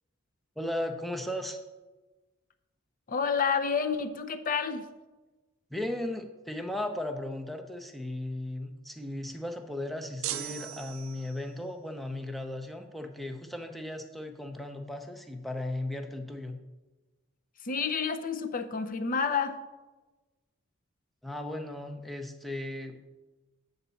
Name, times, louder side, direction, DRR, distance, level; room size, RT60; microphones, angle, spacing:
voice 1, 0.6-1.6 5.7-16.6 21.2-23.0, left 1 dB, ahead, 4 dB, 0.6 m, -36 dB
voice 2, 3.1-4.9 17.6-19.6, left 6 dB, 40° left, 8 dB, 0.6 m, -29 dB
sound 1, 10.2-11.6, right 13 dB, 70° right, 0.4 m, -38 dB
8.7 x 4.0 x 6.9 m, 1.2 s
head